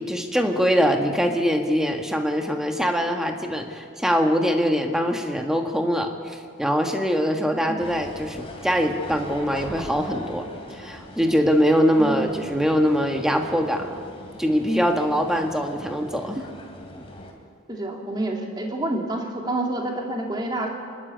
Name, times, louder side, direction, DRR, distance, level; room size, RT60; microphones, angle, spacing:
voice 1, 0.0-14.0 14.4-16.4, equal, 5° right, 3 dB, 1.5 m, -23 dB
voice 2, 7.4-7.8 12.0-12.3 17.7-20.7, right 1 dB, 20° right, 0 dB, 2.6 m, -28 dB
sound 1, 7.8-17.3, left 1 dB, 25° left, 3.0 m, -42 dB
27.0 x 12.5 x 9.3 m, 2.3 s
head